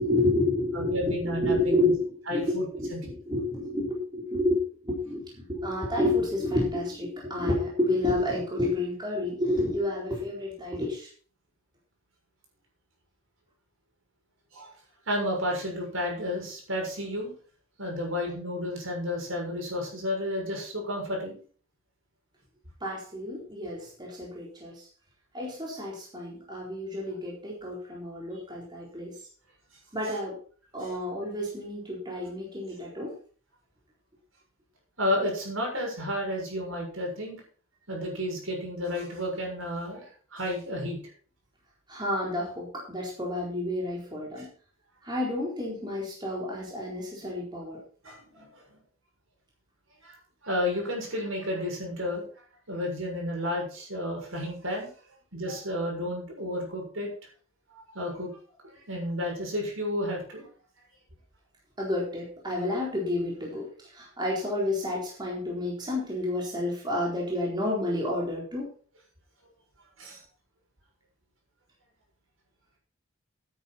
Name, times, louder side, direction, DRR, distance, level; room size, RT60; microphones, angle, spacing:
voice 1, 0.0-11.1 22.8-24.9 25.3-29.1 29.9-30.4 30.7-33.2 41.9-44.5 45.0-47.8 55.5-55.6 61.8-68.7, left 1 dB, 20° right, -4 dB, 4.2 m, -30 dB
voice 2, 0.7-1.9 2.3-2.6 2.9-3.0 14.5-14.7 15.1-17.3 17.8-21.4 35.0-37.4 37.9-41.0 44.4-44.5 48.0-48.5 50.0-50.1 50.4-52.2 52.7-54.9 55.3-57.1 57.7-58.3 58.6-60.4 70.0-70.2, left 1 dB, 70° right, 0 dB, 6.7 m, -32 dB
13.0 x 9.4 x 4.4 m, 0.42 s
head